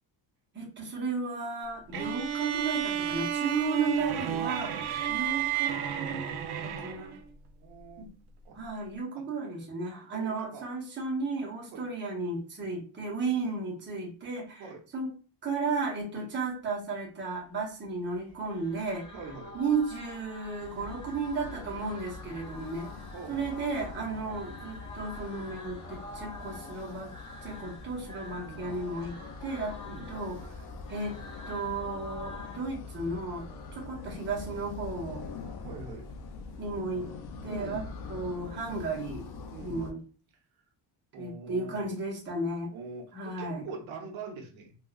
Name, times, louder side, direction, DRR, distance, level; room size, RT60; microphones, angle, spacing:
voice 1, 0.5-6.3 6.6-7.2 8.0-8.1 8.5-14.7 14.9-15.1 15.4-19.1 19.5-22.9 23.3-27.1 27.4-29.1 29.4-29.8 30.1-30.6 30.9-31.1 31.5-35.2 36.6-37.0 37.4-37.8 38.1-39.3 39.6-40.0 41.2-42.7 43.1-43.6, right 3 dB, 25° right, -2 dB, 0.8 m, -34 dB
sound 1, 1.9-7.2, right 8 dB, 60° right, 0.5 m, -31 dB
voice 2, 7.6-8.1 8.4-8.6 10.1-10.6 11.7-11.8 14.6-14.8 16.1-16.3 19.1-19.5 23.1-23.6 24.1-24.3 28.4-28.8 29.8-30.1 35.6-36.1 37.5-37.9 39.5-40.0 41.1-41.9 42.7-44.8, right 4 dB, 90° right, 1 dB, 0.9 m, -43 dB
sound 2, 18.3-32.6, left 2 dB, 10° left, 1.5 m, -47 dB
sound 3, 20.6-39.9, left 4 dB, 60° left, 0.5 m, -44 dB
3.6 x 2.3 x 2.3 m, 0.38 s
cardioid pair, 165°, 46 cm